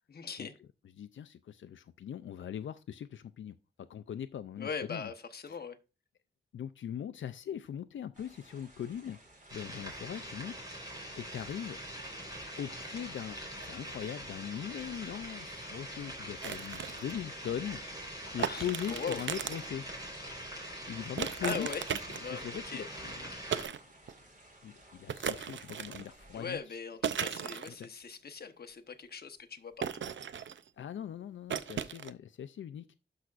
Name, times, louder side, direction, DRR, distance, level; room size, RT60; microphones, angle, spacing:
voice 1, 0.1-0.5 4.6-5.8 18.4-19.2 21.4-21.8 22.2-22.8 26.3-30.0, left 5 dB, 55° left, 1.0 m, -40 dB
voice 2, 1.0-5.1 5.5-5.6 6.5-9.2 9.5-11.8 12.6-19.9 20.9-21.7 22.3-23.4 24.6-26.8 27.8-27.9 30.8-33.0, left 9 dB, 90° left, 0.4 m, -41 dB
sound 1, 8.1-26.6, right 1 dB, 40° right, 3.7 m, -58 dB
sound 2, 9.5-23.6, equal, 20° right, 3.9 m, -43 dB
sound 3, 16.4-17.1 18.4-19.7 21.2-22.4 23.5-23.8 24.1-24.2 25.1-26.1 27.0-27.9 29.8-30.7 31.5-32.1, right 8 dB, 80° right, 0.5 m, -36 dB
12.5 x 5.7 x 2.4 m
wide cardioid pair, 155°, 19 cm